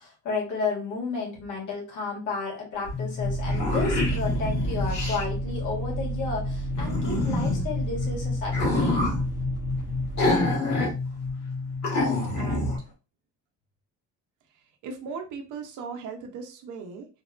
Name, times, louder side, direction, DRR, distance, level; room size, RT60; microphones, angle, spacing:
voice 1, 0.0-9.0, left 4 dB, 90° left, -2 dB, 1.6 m, -32 dB
sound 1, 2.9-3.0 3.2-5.2 6.7-7.7 8.5-9.2 10.2-10.9 11.3-11.4 11.8-12.8, left 2 dB, 65° left, 1.6 m, -26 dB
sound 2, 2.9-12.8, left 4 dB, 45° left, 0.8 m, -31 dB
Vehicle, 3.2-10.6, right 6 dB, 30° right, 0.7 m, -34 dB
voice 2, 11.9-12.8 14.8-17.1, right 5 dB, 90° right, 4 dB, 0.7 m, -38 dB
3.4 x 2.2 x 2.4 m, 0.31 s
cardioid pair, 90°, 30 cm